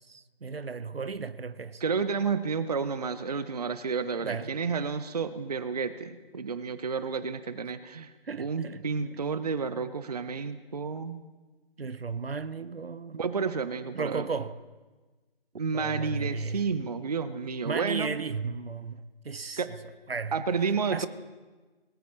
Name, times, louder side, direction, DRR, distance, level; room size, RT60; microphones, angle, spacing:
voice 1, 0.1-1.8 4.2-4.5 8.2-8.8 11.8-13.2 13.9-14.6 15.7-16.6 17.6-19.0 19.2-19.8 20.1-20.3 20.9-21.1, right 4 dB, 75° right, 0.7 m, -34 dB
voice 2, 1.8-8.1 8.4-11.2 13.1-14.3 15.6-18.2 19.6-19.7 20.3-21.1, right 5 dB, 40° right, 0.6 m, -31 dB
19.5 x 18.0 x 3.1 m
figure-of-eight pair, 150°, 30 cm